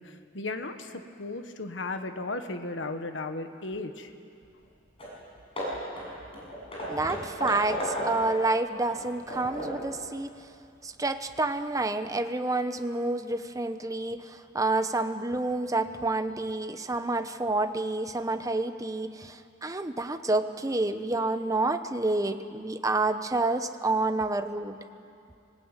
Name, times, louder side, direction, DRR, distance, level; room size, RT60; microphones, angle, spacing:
voice 1, 0.0-4.1, left 2 dB, 80° left, 7 dB, 1.4 m, -35 dB
Hammer / Wood, 4.6-4.7 5.0-5.2 5.6-8.4 8.9-9.9, equal, 30° left, 7.2 m, -35 dB
voice 2, 6.9-10.3 10.8-24.8, right 2 dB, 20° right, 8 dB, 0.9 m, -29 dB
Piano, 8.2-12.2 12.6-13.0, equal, 75° right, 2.7 m, -52 dB
25.5 x 18.5 x 9.0 m, 2.4 s
head